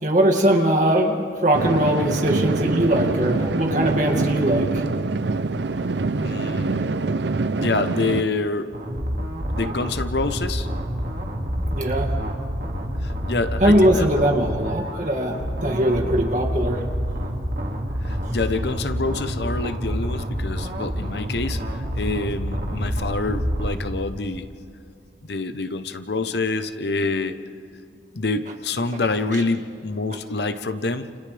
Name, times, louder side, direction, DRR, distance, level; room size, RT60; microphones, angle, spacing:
voice 1, 0.0-4.8 11.7-12.2 13.6-16.8 18.2-18.4, right 1 dB, 45° right, 2 dB, 2.3 m, -21 dB
sound 1, 1.5-8.2, right 3 dB, 80° right, 0.6 m, -25 dB
voice 2, 6.2-6.9 7.6-8.7 9.5-10.7 13.0-14.2 18.0-24.5 25.2-27.4 28.1-31.2, left 3 dB, 75° left, 10 dB, 0.9 m, -27 dB
sound 2, 8.7-23.7, equal, 60° right, 2.3 m, -28 dB
29.5 x 28.5 x 3.4 m, 2.5 s
head